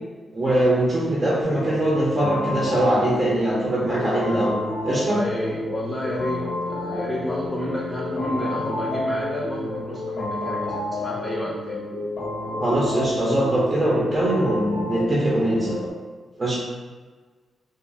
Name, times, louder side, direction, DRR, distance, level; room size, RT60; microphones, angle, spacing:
voice 1, 0.3-4.5 4.8-5.2 12.6-15.8 16.4-16.6, right 1 dB, 35° right, -6 dB, 0.7 m, -22 dB
sound 1, 1.4-15.9, left 2 dB, 70° left, 0.7 m, -30 dB
voice 2, 4.8-11.8, left 1 dB, 15° left, -5 dB, 0.5 m, -30 dB
2.4 x 2.1 x 3.3 m, 1.4 s
cardioid pair, 65°, 0 cm